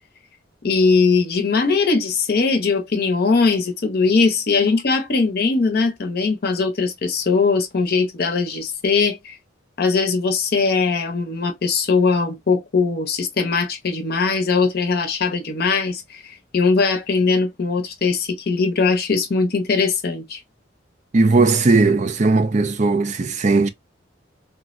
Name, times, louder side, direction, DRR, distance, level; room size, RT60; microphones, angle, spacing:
voice 1, 0.6-9.4 9.8-20.4, left 4 dB, 50° left, 0.7 m, -20 dB
voice 2, 21.1-23.7, right 3 dB, 35° right, 0.4 m, -17 dB
3.6 x 2.1 x 2.4 m
head